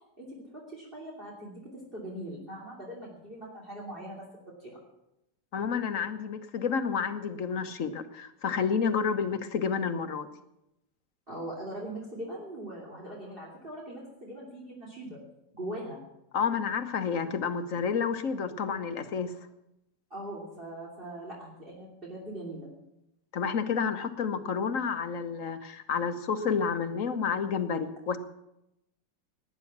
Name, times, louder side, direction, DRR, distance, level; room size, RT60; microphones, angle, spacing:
voice 1, 0.2-4.2 4.6-4.8 11.3-15.2 15.5-16.0 20.1-22.7, right 1 dB, 30° right, -3 dB, 3.2 m, -41 dB
voice 2, 5.5-10.3 16.3-19.3 23.3-28.2, left 6 dB, 50° left, 9 dB, 1.3 m, -30 dB
19.0 x 9.9 x 6.0 m, 0.86 s
omnidirectional pair, 1.9 m